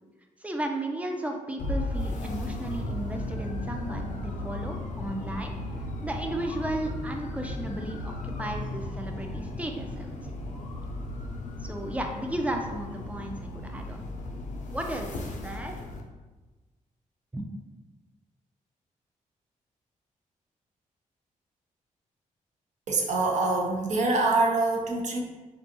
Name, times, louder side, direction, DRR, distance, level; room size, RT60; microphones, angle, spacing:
voice 1, 0.4-5.5 6.0-10.2 11.6-14.0 14.7-15.7 17.3-17.4, right 1 dB, 10° right, 3 dB, 0.3 m, -34 dB
sound 1, 1.6-16.0, left 2 dB, 65° left, 0.4 m, -35 dB
voice 2, 22.9-25.2, right 3 dB, 60° right, 1 dB, 0.5 m, -25 dB
2.6 x 2.3 x 2.6 m, 1.2 s
cardioid pair, 85°, 14 cm